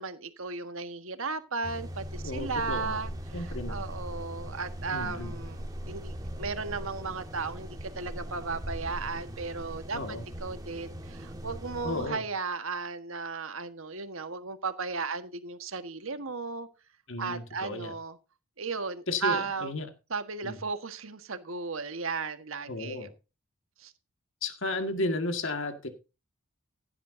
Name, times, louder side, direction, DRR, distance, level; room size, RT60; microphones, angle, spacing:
voice 1, 0.0-16.7 17.2-18.2 18.6-19.7 20.1-23.1 23.8-23.9, right 4 dB, 70° right, 1.5 m, -35 dB
sound 1, 1.6-12.1, equal, 15° right, 1.8 m, -40 dB
voice 2, 2.2-3.0 3.3-3.9 4.9-5.3 9.9-10.2 11.8-12.2 17.1-17.9 19.1-19.9 20.4-20.6 22.7-23.1 24.4-25.9, left 2 dB, 60° left, 1.9 m, -33 dB
16.0 x 10.5 x 2.7 m
head